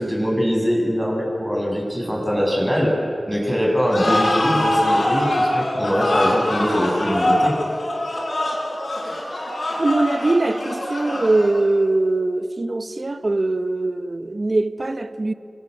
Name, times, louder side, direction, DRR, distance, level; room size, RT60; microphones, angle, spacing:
voice 1, 0.0-2.9 3.3-7.6, equal, 5° right, 7.2 m, -22 dB
sound 1, 3.9-11.8, left 1 dB, 60° left, 7.7 m, -23 dB
voice 2, 9.8-15.3, right 2 dB, 40° right, 1.0 m, -21 dB
29.0 x 25.0 x 8.1 m
wide cardioid pair, 70°, 0 cm